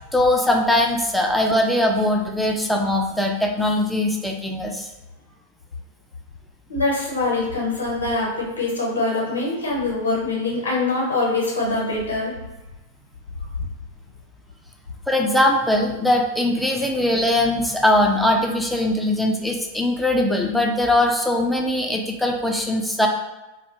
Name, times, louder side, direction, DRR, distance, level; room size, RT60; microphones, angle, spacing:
voice 1, 0.1-4.9 15.1-23.1, left 1 dB, ahead, 1 dB, 0.3 m, -21 dB
voice 2, 6.7-12.4, left 2 dB, 70° left, -3 dB, 0.7 m, -24 dB
2.2 x 2.2 x 2.9 m, 1.1 s
figure-of-eight pair, 90°, 0 cm